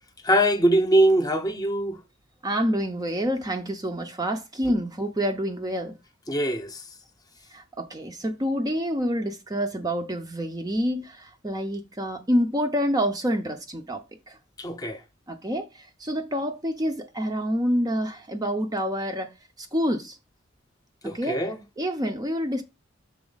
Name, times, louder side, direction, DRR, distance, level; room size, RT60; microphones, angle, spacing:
voice 1, 0.2-2.0 6.3-6.9 14.6-15.0 21.0-21.6, right 1 dB, 20° left, 0.8 m, -22 dB
voice 2, 2.4-5.9 7.5-14.0 14.3-14.4 15.3-19.3 19.6-20.2 21.0-21.4 21.8-22.6, equal, 20° right, 0.6 m, -27 dB
6.0 x 4.3 x 3.9 m
head